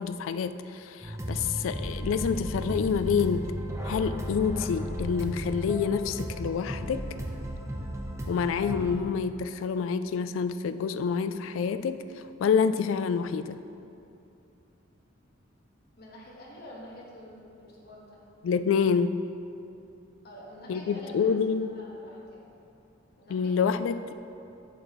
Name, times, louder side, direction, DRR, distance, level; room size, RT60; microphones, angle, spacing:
voice 1, 0.0-3.5 3.8-7.1 8.3-12.0 12.4-13.6 18.4-19.2 20.7-21.7 23.3-24.1, left 6 dB, 85° left, 12 dB, 0.3 m, -27 dB
sound 1, 1.0-9.0, right 1 dB, 15° right, 0.6 m, -35 dB
voice 2, 16.0-18.2 20.2-22.5 23.2-23.5, equal, 55° left, -4 dB, 1.4 m, -47 dB
8.6 x 7.3 x 3.0 m, 2.7 s
head